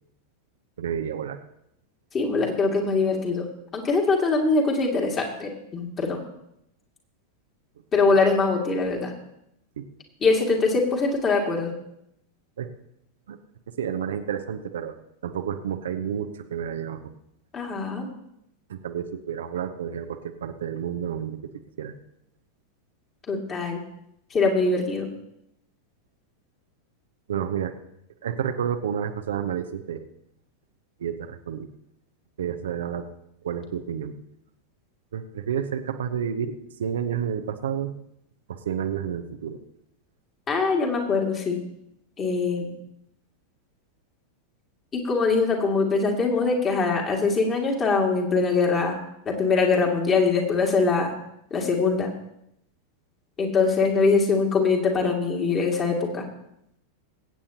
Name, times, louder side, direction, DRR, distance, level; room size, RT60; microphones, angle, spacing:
voice 1, 0.8-1.4 9.8-9.9 12.6-12.7 13.3-13.4 13.8-15.0 15.2-17.0 18.7-21.4 21.8-21.9 27.3-27.7 28.2-30.0 31.0-31.7 32.4-33.1 33.4-34.2 35.1-37.9 38.5-39.6, right 8 dB, 65° right, 7 dB, 0.8 m, -30 dB
voice 2, 2.1-3.5 3.7-6.2 7.9-9.1 10.2-11.7 17.5-18.1 23.3-23.8 24.3-25.1 40.5-41.6 42.2-42.8 44.9-49.0 49.3-51.1 51.5-52.1 53.4-56.2, left 4 dB, 25° left, 0 dB, 2.3 m, -23 dB
22.5 x 8.6 x 2.9 m, 0.78 s
figure-of-eight pair, 90°, 0 cm